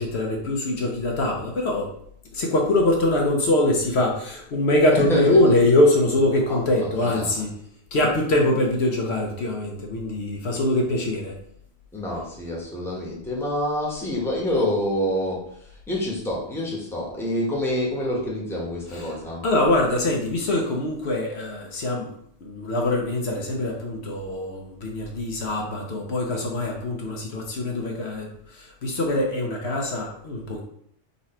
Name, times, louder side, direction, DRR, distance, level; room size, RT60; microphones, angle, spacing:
voice 1, 0.0-1.9 2.3-7.5 7.9-11.4 18.9-19.2 19.4-22.1 22.4-30.6, left 1 dB, 70° left, 0 dB, 1.1 m, -23 dB
voice 2, 4.9-5.4 6.5-6.6 7.0-7.3 11.9-19.4, left 1 dB, ahead, -3 dB, 1.1 m, -27 dB
4.0 x 3.1 x 4.2 m, 0.68 s
omnidirectional pair, 1.2 m